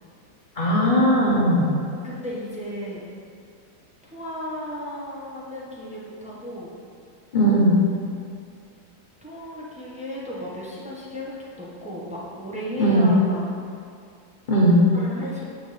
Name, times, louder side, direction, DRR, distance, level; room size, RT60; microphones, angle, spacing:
voice 1, 0.6-1.7 7.3-7.8 12.8-13.1 14.5-14.8, equal, 40° left, -7 dB, 0.7 m, -18 dB
voice 2, 2.0-3.1 4.1-6.7 9.2-13.4 14.9-15.5, equal, 10° right, -7 dB, 0.4 m, -34 dB
8.1 x 4.4 x 4.1 m, 2.3 s
omnidirectional pair, 2.1 m